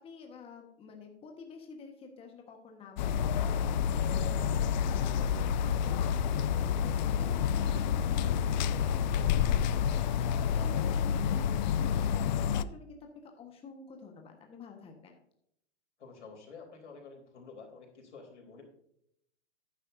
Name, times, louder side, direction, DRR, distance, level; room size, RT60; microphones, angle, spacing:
voice 1, 0.0-15.1, left 5 dB, 15° left, 3 dB, 1.4 m, -49 dB
sound 1, 3.0-12.6, left 8 dB, 40° left, 0.4 m, -29 dB
voice 2, 16.0-18.6, left 4 dB, 85° left, 3 dB, 3.7 m, -50 dB
11.5 x 9.8 x 2.7 m, 0.74 s
hypercardioid pair, 130°, 34 cm